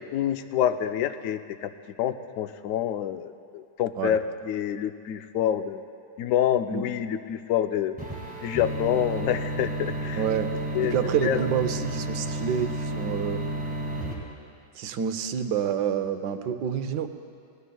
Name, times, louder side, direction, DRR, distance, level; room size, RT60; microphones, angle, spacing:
voice 1, 0.1-1.7 2.0-5.8 6.2-7.9 8.4-10.2 10.7-10.9 11.2-11.4, left 10 dB, 70° left, 9 dB, 0.8 m, -27 dB
sound 1, 8.0-14.1, right 1 dB, 5° right, 1.7 m, -31 dB
voice 2, 10.2-10.5 10.8-13.4 14.7-17.1, right 8 dB, 85° right, 9 dB, 1.3 m, -28 dB
20.5 x 17.5 x 2.3 m, 2.5 s
omnidirectional pair, 1.8 m